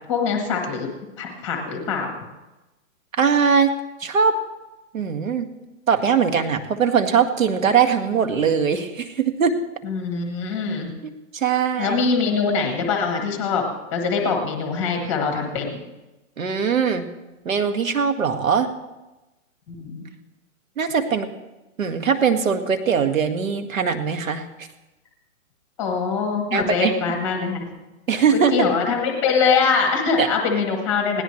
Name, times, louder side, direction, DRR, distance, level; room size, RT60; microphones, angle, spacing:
voice 1, 0.1-0.9 1.2-2.1 9.8-10.9 11.8-13.6 13.9-15.8 19.8-20.1 25.8-27.6 28.3-31.2, left 5 dB, 5° left, 3 dB, 1.0 m, -23 dB
voice 2, 3.2-3.7 4.0-4.4 4.9-5.5 5.9-9.5 11.0-12.0 16.4-17.1 17.5-18.7 20.8-21.3 21.8-24.4 26.5-26.9 28.1-28.7 30.2-30.3, right 6 dB, 70° right, 7 dB, 2.0 m, -21 dB
20.0 x 17.5 x 3.3 m, 1.0 s
hypercardioid pair, 180°, 41 cm